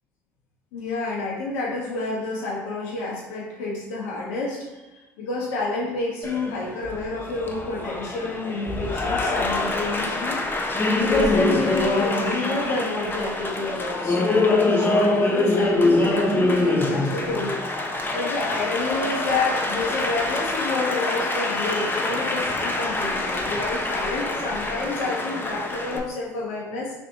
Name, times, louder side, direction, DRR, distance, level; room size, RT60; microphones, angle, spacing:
voice 1, 0.7-10.4 11.0-17.6 18.1-26.9, left 2 dB, 75° left, -5 dB, 1.2 m, -29 dB
Applause, 6.2-26.0, left 2 dB, 25° left, 0.7 m, -24 dB
5.8 x 2.9 x 2.7 m, 1.1 s
hypercardioid pair, 75°, 8 cm